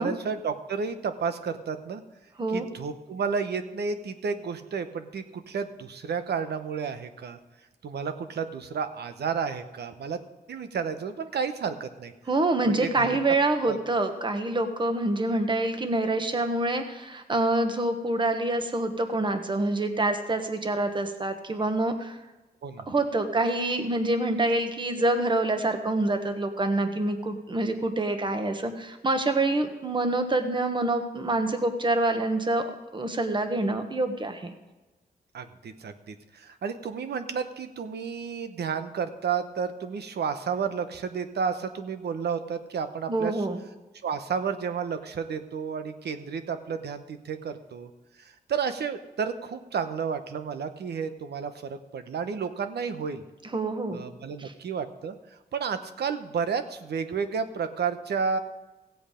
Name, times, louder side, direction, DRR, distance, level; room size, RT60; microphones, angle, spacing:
voice 1, 0.0-2.0 2.5-7.4 7.8-10.2 10.5-12.1 12.7-13.2 13.7-13.8 22.6-22.8 35.3-43.4 44.0-47.9 48.5-53.2 53.9-55.2 55.5-58.4, right 6 dB, 80° right, 9 dB, 0.9 m, -31 dB
voice 2, 12.3-22.2 22.9-34.5 43.1-43.6 53.5-54.0 54.4-54.5, right 2 dB, 30° right, 7 dB, 1.2 m, -26 dB
16.5 x 7.9 x 5.1 m, 1.1 s
wide cardioid pair, 95°, 17 cm